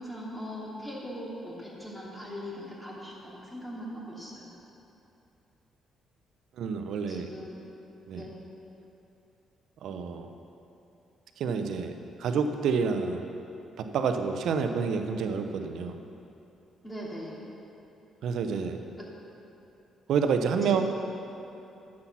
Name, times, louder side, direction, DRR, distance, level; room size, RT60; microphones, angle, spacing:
voice 1, 0.0-4.5 7.1-7.6 8.1-8.4 16.8-17.4 19.0-19.1 20.6-20.8, equal, 10° left, -5 dB, 2.9 m, -40 dB
voice 2, 6.6-7.3 8.1-8.2 9.8-10.3 11.4-11.9 12.2-13.2 13.8-16.0 18.2-18.8 20.1-20.8, right 6 dB, 75° right, 7 dB, 0.8 m, -28 dB
9.9 x 7.5 x 6.1 m, 2.8 s
cardioid pair, 90°, 0 cm